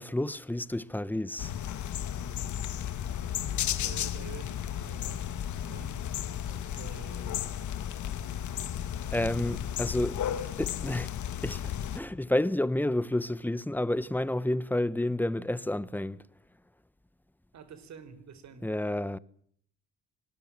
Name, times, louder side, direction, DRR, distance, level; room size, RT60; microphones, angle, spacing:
voice 1, 0.0-1.5 9.1-10.2 10.6-11.1 11.4-16.2 18.6-19.2, left 1 dB, 5° left, 1.1 m, -30 dB
sound 1, 1.4-12.0, left 10 dB, 75° left, 2.3 m, -34 dB
voice 2, 3.8-6.1 6.4-7.5 17.5-18.7, right 7 dB, 65° right, 4.7 m, -49 dB
25.5 x 20.0 x 9.0 m
cardioid pair, 90°, 30 cm